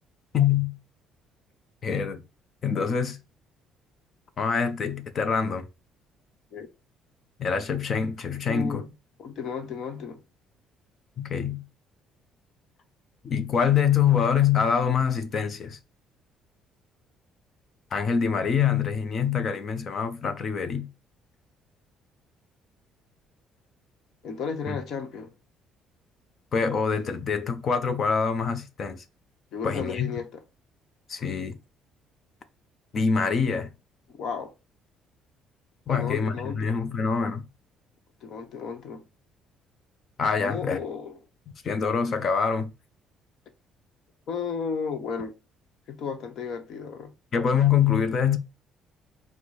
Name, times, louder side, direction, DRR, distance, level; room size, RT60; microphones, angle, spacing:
voice 1, 0.3-0.7 1.8-2.2 2.6-3.2 4.4-5.7 7.4-8.8 11.2-11.6 13.2-15.8 17.9-20.9 24.7-24.8 26.5-29.0 29.6-30.1 31.1-31.6 32.9-33.7 35.9-37.5 40.2-40.8 41.6-42.7 47.3-48.4, left 6 dB, 35° left, 0.6 m, -25 dB
voice 2, 8.3-8.9 9.2-10.2 24.2-25.3 29.5-30.4 34.2-34.5 35.9-36.8 38.2-39.1 40.4-41.2 44.3-45.3 45.9-47.1, left 6 dB, 55° left, 1.0 m, -34 dB
4.7 x 2.2 x 4.1 m
cardioid pair, 155°, 0 cm